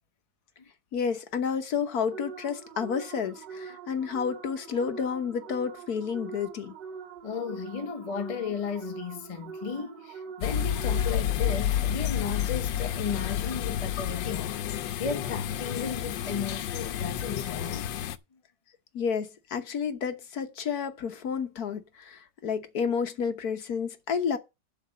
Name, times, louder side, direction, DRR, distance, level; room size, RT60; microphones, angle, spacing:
voice 1, 0.9-6.7 18.9-24.4, left 6 dB, 60° left, 1.4 m, -30 dB
sound 1, 2.1-11.5, right 5 dB, 70° right, 1.9 m, -43 dB
voice 2, 7.2-17.9, left 6 dB, 25° left, 0.7 m, -35 dB
sound 2, 10.4-18.2, left 10 dB, 85° left, 1.5 m, -30 dB
11.5 x 4.1 x 7.5 m
omnidirectional pair, 2.0 m